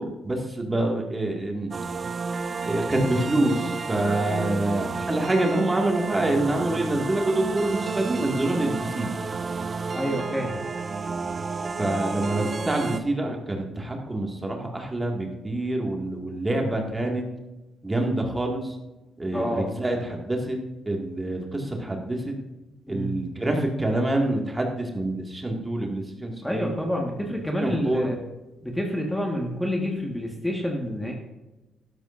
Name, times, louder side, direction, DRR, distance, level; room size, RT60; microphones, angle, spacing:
voice 1, 0.0-1.7 2.7-9.1 11.8-17.3 17.8-18.7 19.2-20.6 20.9-22.3 22.9-26.7 27.6-28.1, right 1 dB, 20° right, 1 dB, 2.1 m, -26 dB
sound 1, 1.7-13.0, right 4 dB, 40° right, 0.6 m, -31 dB
voice 2, 9.9-10.6 19.3-19.7 22.9-23.1 26.4-28.2 28.6-31.1, equal, 5° left, 0 dB, 1.6 m, -28 dB
12.5 x 11.5 x 2.6 m, 1.1 s
cardioid pair, 90°, 0 cm